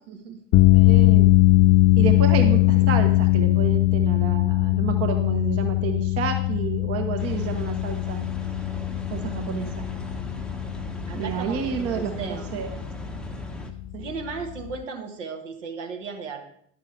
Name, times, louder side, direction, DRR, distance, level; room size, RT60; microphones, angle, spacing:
voice 1, 0.1-0.4 11.1-12.5 14.0-16.4, right 5 dB, 70° right, 3 dB, 1.4 m, -35 dB
sound 1, 0.5-14.8, left 19 dB, 35° left, 0.4 m, -21 dB
voice 2, 0.7-1.3 2.0-8.3 9.1-9.8 11.1-12.7 13.9-14.1, right 7 dB, 40° right, 6 dB, 1.0 m, -30 dB
sound 2, 7.2-13.7, right 1 dB, ahead, 0.8 m, -38 dB
10.5 x 6.7 x 4.6 m, 0.66 s
figure-of-eight pair, 65°, 38 cm